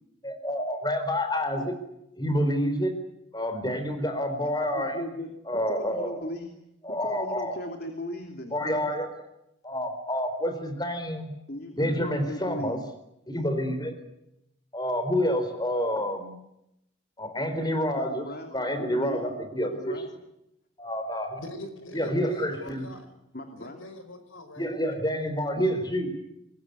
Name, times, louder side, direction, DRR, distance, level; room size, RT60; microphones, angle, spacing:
voice 1, 0.2-1.7 2.2-3.0 3.3-5.0 5.5-6.2 6.8-7.6 8.5-9.1 9.6-11.3 11.8-12.8 13.3-14.0 14.7-16.3 17.2-18.2 18.5-20.1 20.8-21.4 21.9-22.9 24.6-26.1, equal, 20° left, 8 dB, 4.3 m, -28 dB
voice 2, 4.6-6.5 6.9-8.6 11.5-12.8 18.0-20.1 23.3-23.8 25.6-25.8, left 1 dB, 50° left, 5 dB, 2.8 m, -38 dB
voice 3, 21.4-23.1 23.6-25.0, left 1 dB, 85° left, 9 dB, 5.4 m, -43 dB
24.5 x 21.5 x 9.6 m, 0.82 s
head